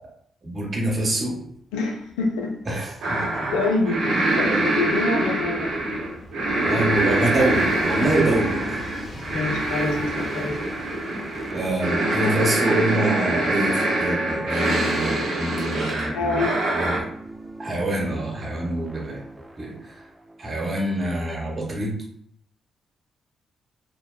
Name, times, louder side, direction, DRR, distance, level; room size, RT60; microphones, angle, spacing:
voice 1, 0.4-1.4 2.7-3.5 4.0-4.1 4.4-4.6 6.7-8.8 11.5-16.4 16.7-16.9 17.6-19.2 19.6-20.0 20.4-21.9, right 1 dB, 45° right, -2 dB, 0.9 m, -26 dB
Train, 1.5-18.1 19.1-19.2, equal, 30° left, 1.2 m, -42 dB
voice 2, 1.7-2.5 3.5-4.0 4.3-5.7 9.3-10.6 16.1-16.6, left 3 dB, 85° left, 1 dB, 0.4 m, -26 dB
sound 1, 3.0-17.0, right 2 dB, 75° right, 0.6 m, -24 dB
sound 2, 10.2-21.4, right 1 dB, 10° right, 0.4 m, -39 dB
2.7 x 2.1 x 2.2 m, 0.66 s
hypercardioid pair, 50°, 0 cm